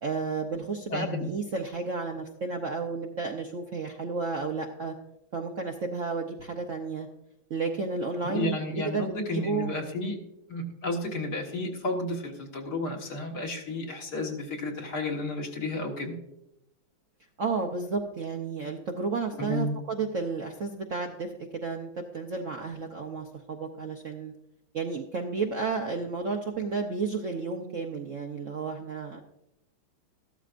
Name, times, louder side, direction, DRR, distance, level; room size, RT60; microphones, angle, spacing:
voice 1, 0.0-4.9 5.3-7.1 7.5-9.7 17.4-24.3 24.7-29.2, right 4 dB, 55° right, 2 dB, 0.9 m, -32 dB
voice 2, 0.9-1.3 8.3-10.2 10.5-16.1 19.4-19.8, left 2 dB, 55° left, 1 dB, 2.0 m, -32 dB
14.0 x 12.5 x 2.5 m, 0.85 s
omnidirectional pair, 2.2 m